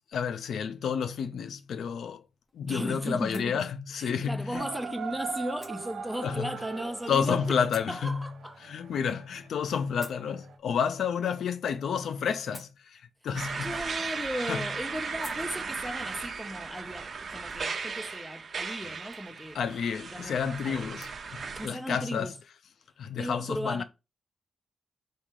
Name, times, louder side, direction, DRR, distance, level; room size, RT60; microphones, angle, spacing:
voice 1, 0.1-2.2 2.5-4.6 6.2-6.5 7.1-8.3 8.6-13.7 14.5-14.6 19.5-22.3 23.0-23.8, left 7 dB, 90° left, 0.4 m, -30 dB
sound 1, 1.7-21.2, left 1 dB, 20° left, 1.2 m, -56 dB
voice 2, 2.7-3.6 3.9-7.6 7.9-8.6 13.6-19.6 20.1-20.3 20.6-20.9 21.5-22.3 23.2-23.8, equal, ahead, 0.6 m, -36 dB
sound 2, 4.5-10.5, right 6 dB, 90° right, 0.9 m, -42 dB
sound 3, 13.3-21.7, right 5 dB, 60° right, 0.6 m, -36 dB
4.1 x 3.2 x 3.7 m
cardioid pair, 95°, 0 cm